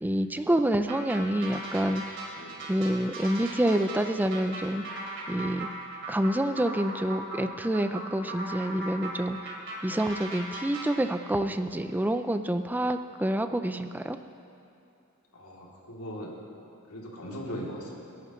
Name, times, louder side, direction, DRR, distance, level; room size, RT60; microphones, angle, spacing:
voice 1, 0.0-2.0 2.7-4.8 5.3-5.7 6.1-9.5 9.8-14.2, right 1 dB, 10° right, 8 dB, 0.4 m, -27 dB
sound 1, 0.9-11.0, right 2 dB, 55° right, 3.0 m, -39 dB
voice 2, 2.3-2.7 15.3-16.3 16.9-17.9, equal, 75° left, -4 dB, 3.0 m, -39 dB
29.0 x 11.0 x 3.2 m, 2.7 s
head